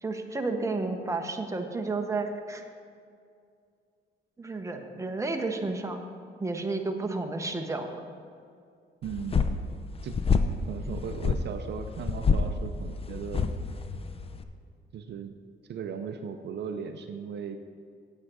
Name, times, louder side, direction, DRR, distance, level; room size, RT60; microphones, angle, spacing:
voice 1, 0.0-2.6 4.4-6.0 6.4-7.9, right 3 dB, 15° right, 4 dB, 0.9 m, -31 dB
sound 1, 9.0-14.4, left 5 dB, 30° left, 0.6 m, -28 dB
voice 2, 9.0-9.4 10.0-10.2 10.7-13.5 14.9-15.3 15.7-17.6, right 7 dB, 60° right, 7 dB, 0.6 m, -37 dB
8.6 x 7.8 x 4.8 m, 2.3 s
cardioid pair, 90°, 20 cm